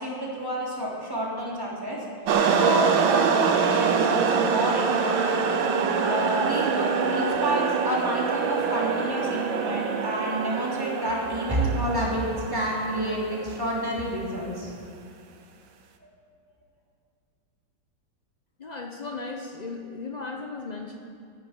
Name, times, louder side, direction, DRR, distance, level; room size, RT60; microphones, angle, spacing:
voice 1, 0.0-2.0 2.5-5.4 6.0-12.2 12.5-14.7, right 1 dB, 10° right, -5 dB, 3.2 m, -29 dB
sound 1, 2.3-13.8, right 6 dB, 70° right, 1.6 m, -25 dB
voice 2, 18.6-21.0, left 3 dB, 90° left, 2 dB, 0.3 m, -36 dB
11.0 x 10.5 x 8.5 m, 2.4 s
omnidirectional pair, 2.3 m